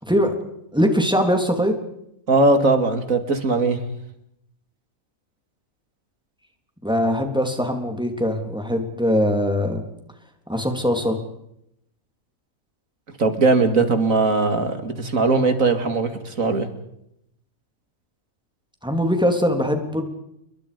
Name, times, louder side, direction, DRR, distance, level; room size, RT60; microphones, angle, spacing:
voice 1, 0.0-0.3 0.7-1.8 6.8-9.8 10.5-11.2 18.8-20.0, equal, 5° right, 4 dB, 3.5 m, -21 dB
voice 2, 2.3-3.8 13.2-16.7, right 3 dB, 75° right, 8 dB, 2.9 m, -19 dB
30.0 x 22.5 x 5.3 m, 0.77 s
omnidirectional pair, 1.4 m